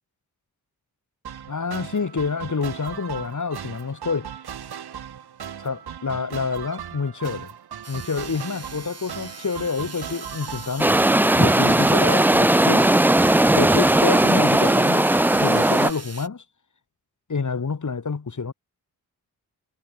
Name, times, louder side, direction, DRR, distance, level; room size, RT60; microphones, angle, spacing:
sound 1, 1.2-16.0, right 9 dB, 70° right, 2.1 m, -38 dB
voice 1, 1.5-4.3 5.6-7.5 7.9-11.0 11.4-12.9 13.6-15.1 15.4-16.4 17.3-18.5, left 5 dB, 50° left, 3.9 m, -28 dB
sound 2, 7.8-16.3, right 3 dB, 40° right, 6.9 m, -41 dB
sound 3, 10.8-15.9, right 1 dB, 5° right, 0.5 m, -17 dB
supercardioid pair, 40°, 39 cm